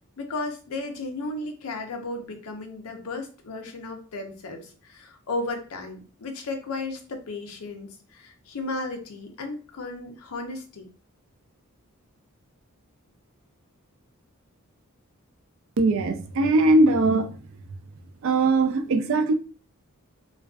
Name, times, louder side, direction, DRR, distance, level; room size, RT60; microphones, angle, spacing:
voice 1, 0.2-10.9, left 2 dB, 90° left, 0.6 m, -34 dB
voice 2, 15.8-17.4 18.2-19.3, right 2 dB, 65° right, 0.4 m, -20 dB
2.4 x 2.2 x 2.3 m
head